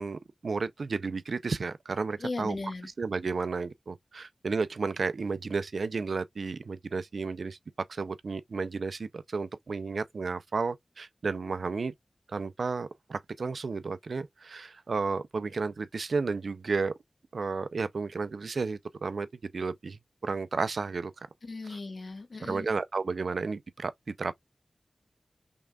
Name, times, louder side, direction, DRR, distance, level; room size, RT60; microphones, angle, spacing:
voice 1, 0.0-2.6 3.0-7.6 7.9-11.9 12.3-16.9 17.3-21.1 21.7-21.8 22.5-24.3, right 4 dB, 90° right, 0.4 m, -32 dB
voice 2, 2.2-2.9 21.4-22.7, left 3 dB, 75° left, 1.4 m, -37 dB
5.3 x 3.6 x 2.3 m
wide cardioid pair, 60°, 0 cm